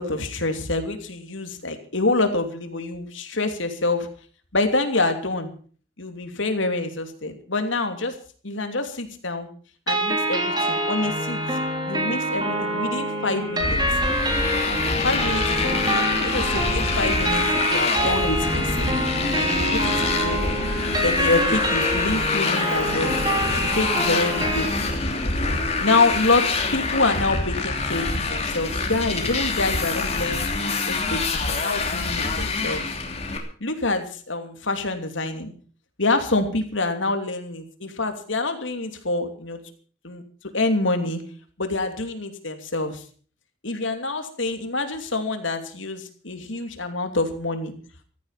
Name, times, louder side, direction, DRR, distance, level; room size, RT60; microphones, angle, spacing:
voice 1, 0.0-4.1 4.5-5.5 6.0-8.1 8.4-9.5 9.9-11.4 11.9-13.8 15.0-17.4 17.7-18.9 19.3-20.6 21.0-23.1 23.7-24.7 25.8-30.5 30.9-32.9 33.6-35.5 36.0-39.6 40.0-40.2 40.5-41.2 41.6-43.0 43.6-47.7, left 2 dB, 75° left, 7 dB, 2.9 m, -26 dB
sound 1, 9.9-24.6, right 1 dB, 20° right, 3.2 m, -26 dB
Motorcycle, 13.6-33.4, left 3 dB, 30° left, 2.9 m, -25 dB
15.5 x 13.5 x 5.7 m, 0.43 s
head